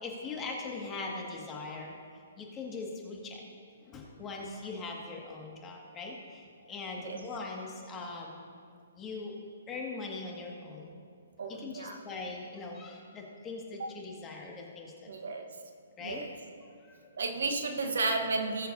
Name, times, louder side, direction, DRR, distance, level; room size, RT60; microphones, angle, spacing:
voice 1, 0.0-2.0 2.4-3.4 3.8-8.3 9.0-9.3 9.7-11.0 11.5-15.1 16.0-16.3 16.9-17.1, left 3 dB, 20° left, -1 dB, 2.0 m, -41 dB
voice 2, 11.4-12.0 13.8-13.9 15.1-15.4 16.0-16.3 17.2-18.7, right 3 dB, 70° right, 5 dB, 1.3 m, -32 dB
19.5 x 7.8 x 2.8 m, 2.3 s
hypercardioid pair, 135°, 0 cm